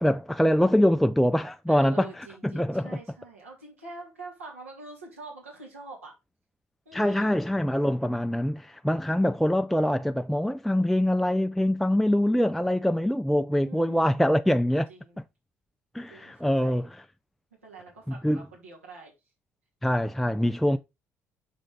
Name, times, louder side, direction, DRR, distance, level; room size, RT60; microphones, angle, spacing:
voice 1, 0.0-3.0 6.9-14.9 15.9-17.0 18.2-18.5 19.8-20.8, equal, ahead, 0.3 m, -24 dB
voice 2, 1.7-6.2 6.9-7.3 13.6-14.2 14.9-15.2 16.1-16.9 17.6-19.1 20.6-20.7, right 3 dB, 85° right, 2.4 m, -45 dB
6.2 x 6.0 x 3.7 m
figure-of-eight pair, 50°, 7 cm